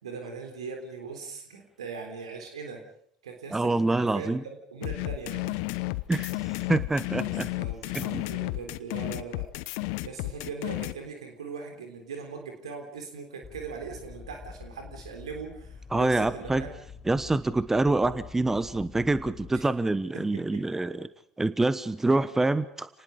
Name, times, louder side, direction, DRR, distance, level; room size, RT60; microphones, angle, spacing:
voice 1, 0.0-2.8 3.2-5.6 7.2-9.5 10.0-16.7 19.5-19.6 20.1-20.6, right 5 dB, 75° right, 4 dB, 3.7 m, -40 dB
voice 2, 3.5-4.4 6.1-6.3 6.7-7.5 7.9-8.2 15.9-16.6 17.1-21.1 21.4-22.9, right 2 dB, 10° right, 15 dB, 1.2 m, -26 dB
sound 1, 4.8-10.9, left 21 dB, 60° left, 0.9 m, -32 dB
sound 2, 13.4-19.7, left 6 dB, 30° left, 1.8 m, -46 dB
30.0 x 19.5 x 5.0 m, 0.64 s
figure-of-eight pair, 65°, 3 cm